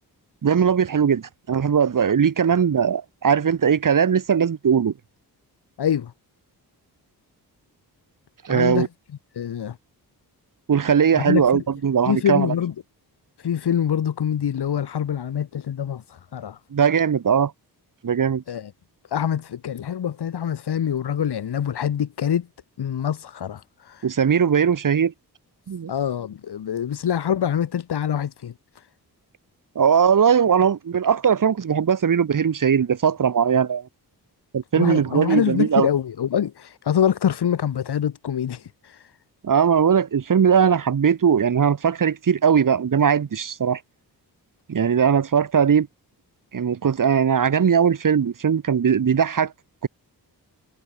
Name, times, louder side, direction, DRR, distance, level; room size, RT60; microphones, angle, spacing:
voice 1, 0.4-4.9 8.4-8.9 10.7-12.5 16.7-17.5 18.0-18.4 24.0-25.1 25.7-25.9 29.8-33.9 34.5-35.9 39.4-43.8 44.7-45.9 46.5-49.5 49.8-49.9, right 7 dB, 55° right, 2.0 m, -19 dB
voice 2, 5.8-6.1 8.5-8.9 9.3-9.8 11.1-11.6 12.1-12.7 13.4-16.6 18.5-18.7 19.1-22.5 22.8-24.1 25.9-28.9 34.8-39.1, left 9 dB, 85° left, 2.4 m, -25 dB
wide cardioid pair, 140°, 39 cm